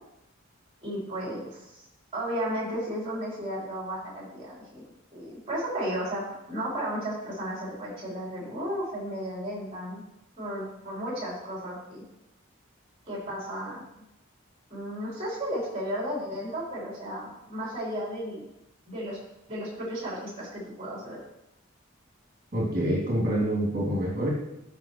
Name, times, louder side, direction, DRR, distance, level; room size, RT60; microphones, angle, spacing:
voice 1, 0.8-1.8 2.1-4.8 5.1-10.0 10.4-12.0 13.1-13.8 14.7-18.4 18.9-19.2 19.5-21.2, equal, 30° right, -5 dB, 3.7 m, -34 dB
voice 2, 22.5-24.3, right 1 dB, 45° right, -5 dB, 2.8 m, -26 dB
14.0 x 5.7 x 3.1 m, 0.86 s
head